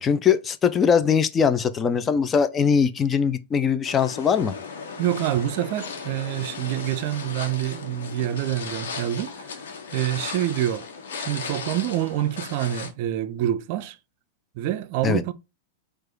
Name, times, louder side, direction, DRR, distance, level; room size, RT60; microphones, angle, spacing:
voice 1, 0.0-4.5 15.0-15.2, left 7 dB, 25° left, 0.5 m, -21 dB
sound 1, 3.8-12.9, left 5 dB, 75° left, 1.2 m, -36 dB
voice 2, 5.0-9.4 9.9-10.8 11.2-14.0 14.6-15.3, right 12 dB, 55° right, 0.5 m, -26 dB
4.7 x 2.5 x 4.5 m
hypercardioid pair, 110°, 0 cm